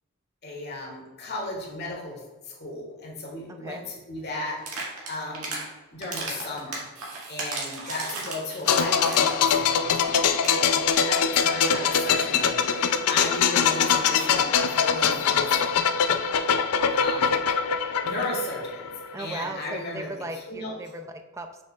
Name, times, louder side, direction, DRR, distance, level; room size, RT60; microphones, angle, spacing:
voice 1, 0.4-5.5 5.9-6.9 7.3-15.5 16.9-17.3 18.0-18.9 19.2-20.1 20.5-20.7, left 2 dB, 45° left, -2 dB, 1.7 m, -35 dB
voice 2, 3.5-3.9 19.1-21.6, right 1 dB, 15° right, 6 dB, 0.4 m, -37 dB
sound 1, 4.6-5.6 6.0-9.5 9.8-9.9 10.1-10.2 10.4-10.6, right 3 dB, 80° right, 1.9 m, -34 dB
sound 2, 8.7-19.3 19.5-19.7, left 7 dB, 90° left, 0.4 m, -23 dB
7.2 x 6.4 x 2.4 m, 1.2 s
head